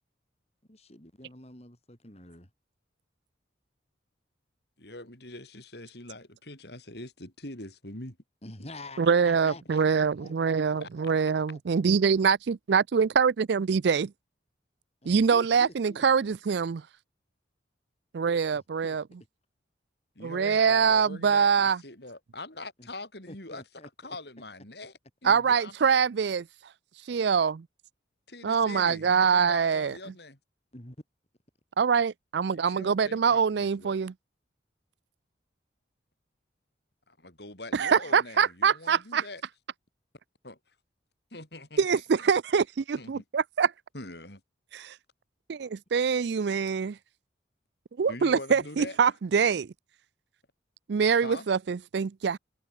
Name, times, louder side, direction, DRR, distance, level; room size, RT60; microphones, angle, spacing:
voice 1, 0.7-2.5 8.4-11.8 15.0-16.3 18.5-19.0 22.8-22.9 23.3-24.2 30.7-31.0, left 2 dB, 35° left, 3.7 m, -48 dB
voice 2, 4.8-8.2 8.6-8.7 10.8-10.9 20.2-23.6 24.0-24.9 25.2-25.7 28.3-30.4 32.5-34.0 37.1-39.4 40.4-40.6 41.3-42.0 43.0-43.2 43.9-44.4 48.1-49.0 51.2-51.5, left 2 dB, 60° left, 5.9 m, -43 dB
voice 3, 9.0-14.1 15.1-16.8 18.1-19.0 20.2-21.8 25.2-26.5 27.1-27.7 28.4-29.9 31.8-34.1 37.7-39.2 41.8-43.7 44.7-44.9 45.5-47.0 48.0-49.7 50.9-52.4, right 6 dB, 65° right, 0.4 m, -24 dB
head